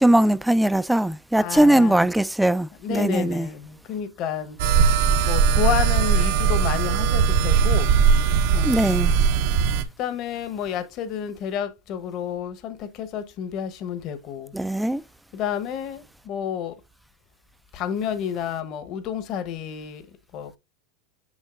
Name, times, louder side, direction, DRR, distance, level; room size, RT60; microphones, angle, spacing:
voice 1, 0.0-3.5 8.6-9.1 14.5-15.0, right 1 dB, 5° right, 0.3 m, -20 dB
voice 2, 1.4-2.1 2.8-4.8 5.2-7.9 8.5-9.2 10.0-14.5 15.3-16.8 17.7-20.0 20.3-20.5, left 9 dB, 45° left, 0.9 m, -30 dB
sound 1, 4.6-9.8, right 7 dB, 65° right, 0.8 m, -19 dB
7.3 x 5.5 x 2.4 m
supercardioid pair, 125°, 0 cm